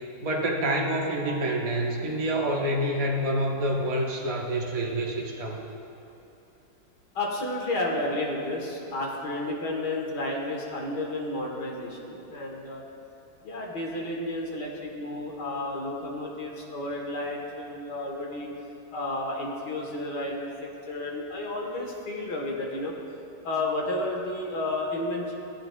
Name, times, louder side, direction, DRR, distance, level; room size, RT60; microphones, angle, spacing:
voice 1, 0.2-5.6, right 1 dB, 30° right, -2 dB, 0.6 m, -27 dB
voice 2, 7.2-12.9 13.4-18.5 18.9-20.5 20.8-23.0 23.4-25.3, left 2 dB, 65° left, -1 dB, 1.8 m, -31 dB
15.0 x 8.8 x 2.2 m, 2.9 s
omnidirectional pair, 2.0 m